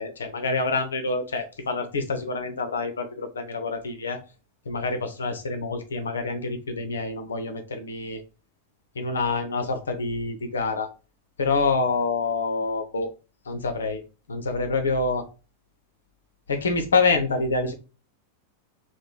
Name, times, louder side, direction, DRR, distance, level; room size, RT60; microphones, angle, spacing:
voice 1, 0.0-4.2 4.7-8.2 8.9-10.9 11.4-13.1 13.5-14.0 14.3-15.3 16.5-17.7, left 3 dB, 70° left, 6 dB, 0.6 m, -26 dB
3.0 x 2.1 x 3.8 m, 0.32 s
figure-of-eight pair, 90°, 0 cm